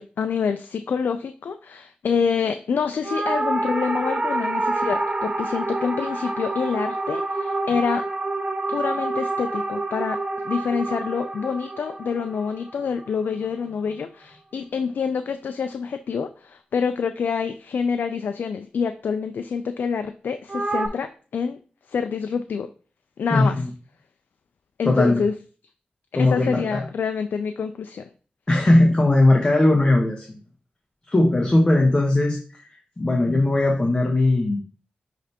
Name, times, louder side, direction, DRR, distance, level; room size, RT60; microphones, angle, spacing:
voice 1, 0.0-8.1 8.7-21.6 21.9-22.7 23.2-23.6 24.8-25.3 26.2-28.1, left 6 dB, 85° left, 8 dB, 0.3 m, -27 dB
sound 1, 3.0-13.5 20.5-20.9, right 2 dB, 35° right, 0.8 m, -27 dB
voice 2, 23.3-23.7 24.8-25.2 26.1-26.8 28.5-30.3 31.1-32.7 33.0-34.6, left 2 dB, 30° left, 0 dB, 1.1 m, -19 dB
9.9 x 3.3 x 2.8 m, 0.39 s
wide cardioid pair, 85°, 3 cm